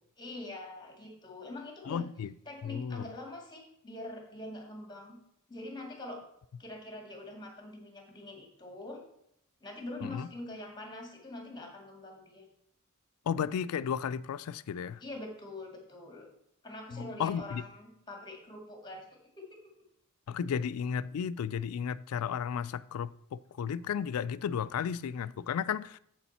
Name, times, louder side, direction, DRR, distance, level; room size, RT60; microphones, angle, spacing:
voice 1, 0.2-2.1 2.5-5.2 5.5-6.2 6.6-9.0 9.6-12.5 15.0-16.3 16.6-19.7, left 2 dB, 20° left, 2.0 m, -44 dB
voice 2, 1.9-2.3 2.6-3.1 10.0-10.3 13.3-15.0 16.9-17.6 20.3-26.0, left 7 dB, 90° left, 0.3 m, -34 dB
7.7 x 7.0 x 4.2 m
head